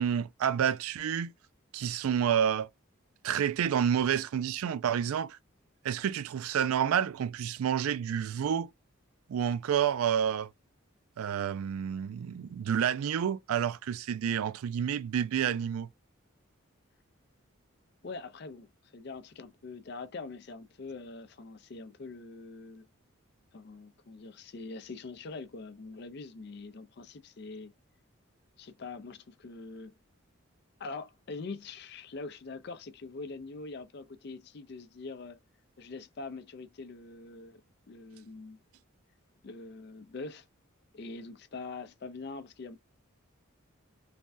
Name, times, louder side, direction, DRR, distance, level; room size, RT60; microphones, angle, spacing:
voice 1, 0.0-1.3 1.7-2.7 3.2-5.4 5.8-8.7 9.3-10.5 11.2-15.9, right 8 dB, 90° right, 0.3 m, -29 dB
voice 2, 18.0-22.9 23.5-27.7 28.6-30.0 30.8-35.4 35.8-37.6 37.9-38.6 39.4-40.5 40.9-42.8, left 3 dB, 50° left, 0.4 m, -43 dB
3.3 x 2.2 x 2.5 m
head